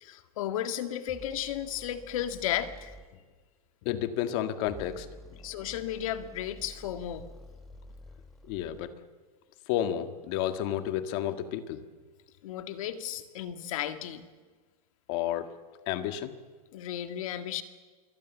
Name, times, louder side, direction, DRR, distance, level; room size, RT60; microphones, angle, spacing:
voice 1, 0.0-2.9 5.4-7.3 12.4-14.3 16.7-17.6, left 11 dB, 60° left, 9 dB, 2.0 m, -34 dB
sound 1, 1.1-3.1 4.6-8.9, equal, ahead, 1.2 m, -50 dB
voice 2, 3.9-5.1 8.5-8.9 9.7-11.8 15.1-15.5 15.9-16.3, left 11 dB, 40° left, 9 dB, 1.7 m, -31 dB
26.5 x 23.0 x 7.4 m, 1.4 s
supercardioid pair, 165°, 20 cm